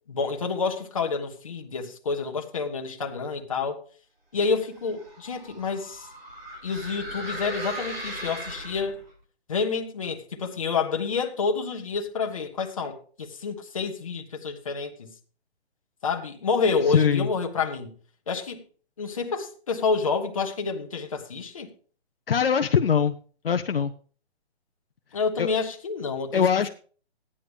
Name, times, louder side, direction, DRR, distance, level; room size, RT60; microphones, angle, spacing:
voice 1, 0.1-3.8 4.3-6.1 6.6-9.0 9.5-15.1 16.0-17.9 18.3-18.6 19.0-21.7 25.1-26.4, left 5 dB, 30° left, 1.1 m, -28 dB
sound 1, 4.7-9.1, right 1 dB, 60° right, 5.5 m, -38 dB
voice 2, 16.9-17.3 22.3-23.1 23.4-23.9 25.4-25.5 26.3-26.7, left 7 dB, 60° left, 0.7 m, -22 dB
14.0 x 9.8 x 3.4 m
hypercardioid pair, 180°, 33 cm